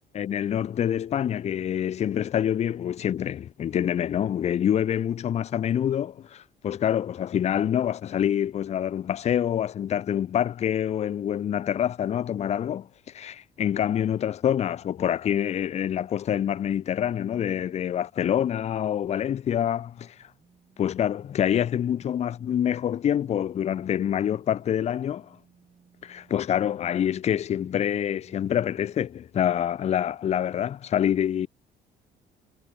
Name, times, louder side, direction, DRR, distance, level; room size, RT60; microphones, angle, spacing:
voice 1, 0.1-12.9 13.1-20.3 20.8-25.4 26.0-31.5, left 10 dB, 40° left, 0.6 m, -26 dB
sound 1, 19.5-29.1, right 6 dB, 35° right, 4.5 m, -62 dB
cardioid pair, 110°, 17 cm